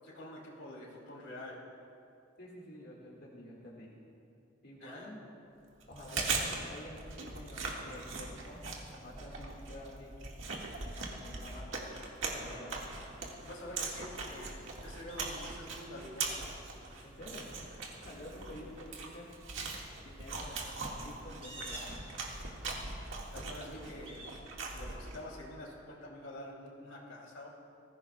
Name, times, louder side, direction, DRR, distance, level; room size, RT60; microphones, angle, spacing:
voice 1, 0.0-1.6 4.8-5.1 13.4-14.6 14.8-16.5 23.3-24.2 24.6-27.5, left 1 dB, 90° left, -3 dB, 3.0 m, -47 dB
voice 2, 2.4-3.9 4.6-5.2 5.9-10.2 11.0-11.8 12.3-12.8 17.0-17.6 18.0-19.3 20.0-21.9, left 1 dB, 55° left, -5 dB, 1.9 m, -49 dB
Chewing mastication, 5.8-25.3, right 3 dB, 85° right, 1.8 m, -40 dB
sound 1, 13.0-24.3, right 1 dB, 30° right, 3.1 m, -55 dB
19.5 x 15.0 x 2.3 m, 2.5 s
head